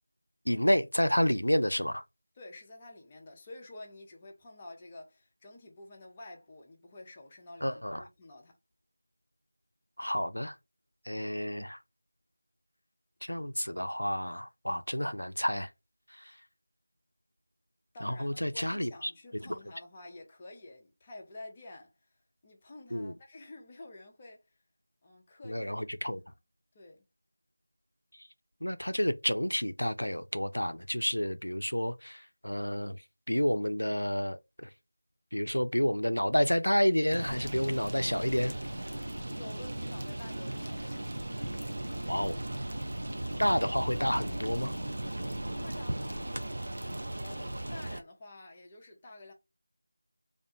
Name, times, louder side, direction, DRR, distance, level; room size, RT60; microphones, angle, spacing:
voice 1, 0.5-2.0 7.6-8.1 10.0-10.6 11.1-11.8 13.2-15.7 16.1-16.3 18.0-19.1 19.4-19.6 22.9-23.1 25.5-26.2 28.1-28.3 28.6-33.0 33.3-34.7 35.3-38.5 42.1-42.4 43.4-44.7, equal, 90° left, 0.3 m, -30 dB
voice 2, 2.3-8.6 17.9-24.5 25.0-25.7 26.0-26.3 26.7-27.0 39.3-41.1 45.4-46.5 47.2-49.3, left 2 dB, 20° left, 0.5 m, -50 dB
sound 1, 37.1-48.0, right 1 dB, 55° right, 0.5 m, -37 dB
2.4 x 2.1 x 2.7 m
figure-of-eight pair, 170°, 0 cm